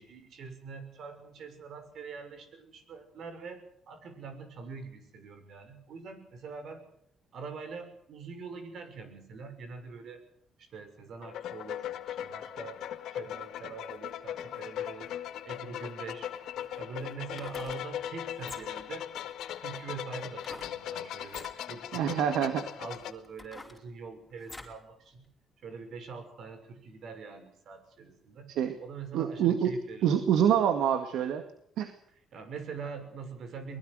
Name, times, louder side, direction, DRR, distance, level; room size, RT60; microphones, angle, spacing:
voice 1, 0.0-6.8 7.3-10.2 10.6-15.1 15.4-16.3 16.8-19.1 19.6-25.3 25.6-28.5 28.8-30.1 32.3-33.8, right 5 dB, 65° right, 8 dB, 6.1 m, -44 dB
sound 1, 11.2-23.1, left 11 dB, 80° left, 1.8 m, -39 dB
sound 2, 17.2-17.8 18.4-18.9 20.4-20.8 21.2-21.6 22.3-22.4 22.9-24.8 25.2-25.3, left 2 dB, 10° left, 4.8 m, -47 dB
voice 2, 21.9-22.6 28.5-28.8 29.1-29.7 30.0-31.4 31.8-31.9, right 9 dB, 85° right, 8 dB, 2.0 m, -26 dB
23.0 x 21.0 x 6.5 m, 0.67 s
cardioid pair, 90°, 0 cm